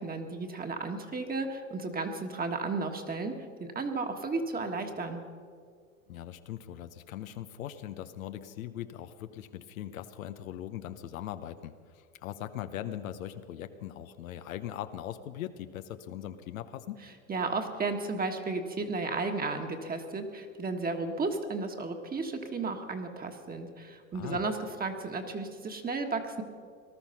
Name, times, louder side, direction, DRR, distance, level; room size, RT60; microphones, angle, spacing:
voice 1, 0.0-5.2 17.3-26.4, right 3 dB, 20° right, 4 dB, 1.6 m, -33 dB
voice 2, 6.1-17.0 24.1-24.4, left 11 dB, 80° left, 10 dB, 1.0 m, -40 dB
19.0 x 12.5 x 5.8 m, 2.1 s
hypercardioid pair, 100°, 40 cm